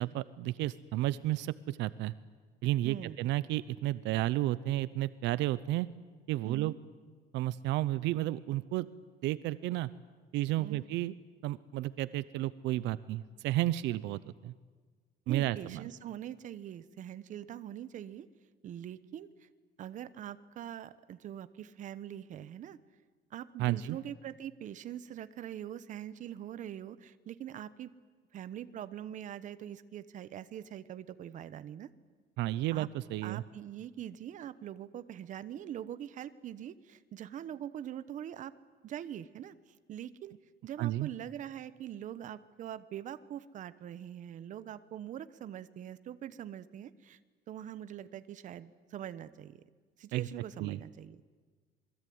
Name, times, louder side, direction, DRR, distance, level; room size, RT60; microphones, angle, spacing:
voice 1, 0.0-2.1 2.6-5.9 6.3-6.7 7.3-8.9 9.2-9.9 10.3-11.1 11.4-14.5 15.3-15.9 23.6-24.0 32.4-33.4 40.8-41.1 50.1-50.3 50.6-50.8, right 15 dB, 80° right, 17 dB, 0.8 m, -32 dB
voice 2, 2.8-3.2 6.4-6.8 10.6-10.9 15.3-18.3 18.6-19.5 19.8-22.8 23.3-27.9 28.3-31.9 32.7-32.9 33.2-38.5 38.8-39.5 39.9-40.3 40.6-47.2 47.5-49.6 50.0-51.2, right 10 dB, 45° right, 14 dB, 1.1 m, -43 dB
28.0 x 22.0 x 9.5 m, 1.5 s
cardioid pair, 160°, 18 cm